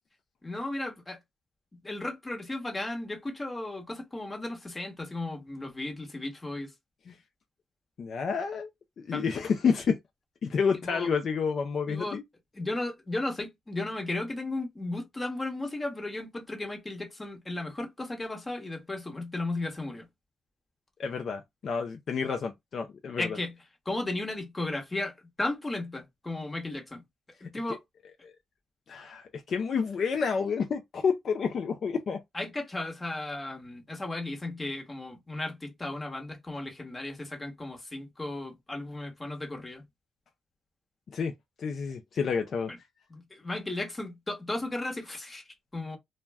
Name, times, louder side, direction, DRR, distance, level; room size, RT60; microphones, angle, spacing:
voice 1, 0.4-1.2 1.8-6.7 9.1-9.3 10.8-11.1 11.9-12.2 12.5-20.1 23.2-23.5 23.8-27.0 27.4-27.8 32.3-39.8 42.7-42.8 43.1-46.0, left 2 dB, 20° left, 1.1 m, -35 dB
voice 2, 8.0-8.7 9.0-10.0 10.4-12.2 21.0-23.4 28.2-28.3 28.9-32.2 41.1-41.3 41.6-42.7, left 6 dB, 55° left, 0.4 m, -29 dB
2.2 x 2.1 x 3.4 m
cardioid pair, 90°, 0 cm